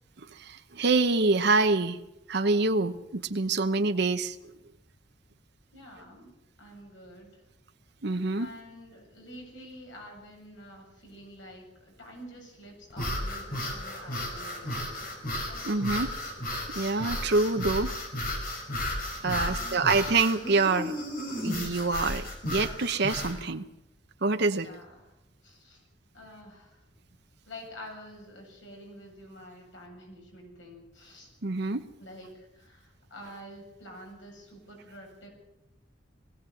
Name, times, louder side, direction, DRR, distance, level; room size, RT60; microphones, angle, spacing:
voice 1, 0.3-2.0 2.3-4.4 8.0-8.5 15.7-16.1 16.7-17.9 19.2-20.9 21.4-23.6 24.2-24.7 31.4-31.8, right 3 dB, 65° right, 7 dB, 1.0 m, -26 dB
voice 2, 5.7-6.3 6.6-7.4 8.3-15.2 15.5-16.0 19.3-20.0 24.6-25.1 25.4-25.8 26.1-26.8 27.5-31.3 32.0-35.3, equal, 90° left, 1 dB, 7.6 m, -48 dB
sound 1, 12.9-23.4, left 1 dB, 50° left, 5.6 m, -34 dB
20.5 x 16.5 x 7.9 m, 0.91 s
head